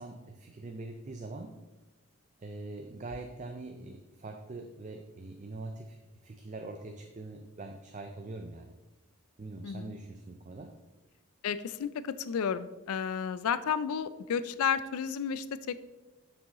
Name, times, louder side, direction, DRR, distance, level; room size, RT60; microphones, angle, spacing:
voice 1, 0.0-1.6 2.4-8.8 9.4-10.8, right 2 dB, 35° right, 4 dB, 0.4 m, -43 dB
voice 2, 9.6-9.9 11.4-15.8, left 7 dB, 80° left, 15 dB, 0.4 m, -32 dB
7.2 x 6.2 x 3.0 m, 1.1 s
head